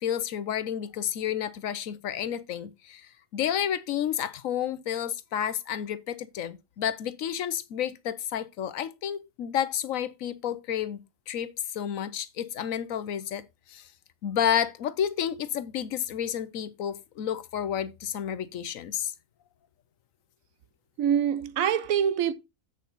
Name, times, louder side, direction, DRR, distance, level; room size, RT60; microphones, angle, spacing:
voice 1, 0.0-11.0 11.3-13.4 13.7-13.9 14.2-19.1, left 9 dB, 70° left, 1.1 m, -30 dB
voice 2, 21.0-22.3, right 9 dB, 75° right, 1.1 m, -25 dB
8.0 x 6.4 x 3.9 m
omnidirectional pair, 1.5 m